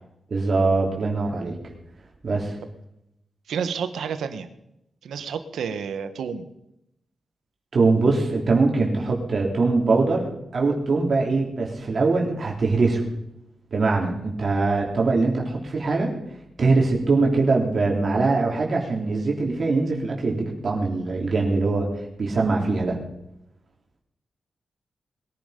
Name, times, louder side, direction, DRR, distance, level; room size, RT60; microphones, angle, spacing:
voice 1, 0.3-1.6 2.2-2.6 7.7-13.1 13.7-16.1 16.6-21.9 22.2-23.0, right 3 dB, 60° right, -1 dB, 3.7 m, -22 dB
voice 2, 3.5-4.5 5.0-6.5, right 6 dB, 90° right, 10 dB, 1.3 m, -30 dB
21.5 x 11.0 x 5.3 m, 0.83 s
cardioid pair, 55°, 0 cm